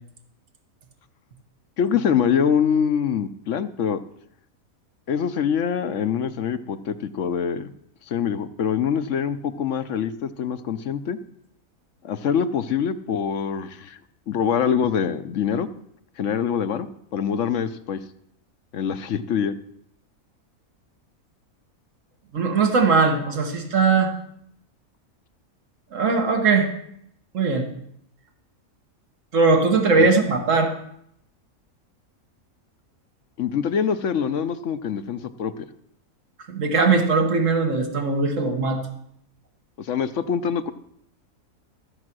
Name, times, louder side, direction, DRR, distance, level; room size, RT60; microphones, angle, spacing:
voice 1, 1.8-4.0 5.1-7.7 8.1-11.2 12.0-14.0 14.3-15.7 16.2-18.0 18.7-19.5 30.0-30.1 33.4-35.7 39.8-40.7, left 7 dB, 65° left, 11 dB, 1.0 m, -24 dB
voice 2, 22.3-24.1 25.9-26.7 27.3-27.7 29.3-30.7 36.5-38.8, right 4 dB, 60° right, 3 dB, 1.9 m, -20 dB
15.0 x 7.4 x 6.2 m, 0.73 s
omnidirectional pair, 1.5 m